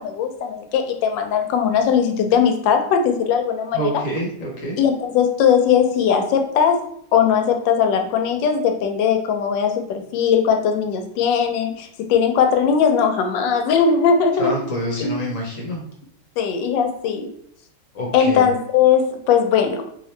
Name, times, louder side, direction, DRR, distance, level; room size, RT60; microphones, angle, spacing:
voice 1, 0.0-3.8 4.8-6.8 7.1-14.5 15.0-15.2 16.4-17.3 18.1-19.8, left 7 dB, 90° left, 6 dB, 1.3 m, -19 dB
voice 2, 3.7-4.8 14.4-15.8 17.9-18.5, equal, 55° left, -2 dB, 1.1 m, -26 dB
3.0 x 2.8 x 3.1 m, 0.69 s
omnidirectional pair, 1.9 m